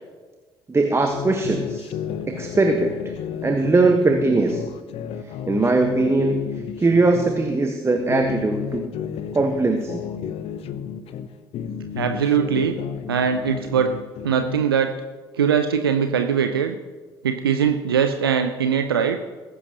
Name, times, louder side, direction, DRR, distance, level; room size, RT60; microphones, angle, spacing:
voice 1, 0.7-1.9 2.3-3.1 3.4-4.8 5.5-6.4 6.8-8.8 9.3-10.0, right 3 dB, 20° right, 5 dB, 1.3 m, -20 dB
sound 1, 1.1-7.6 8.0-11.3 11.5-14.7, left 8 dB, 55° left, 0.8 m, -32 dB
voice 2, 12.0-12.8 13.1-13.9 14.2-14.9 15.4-16.8 17.2-19.2, right 7 dB, 80° right, 7 dB, 0.6 m, -21 dB
20.5 x 11.0 x 2.9 m, 1.3 s
figure-of-eight pair, 50°, 12 cm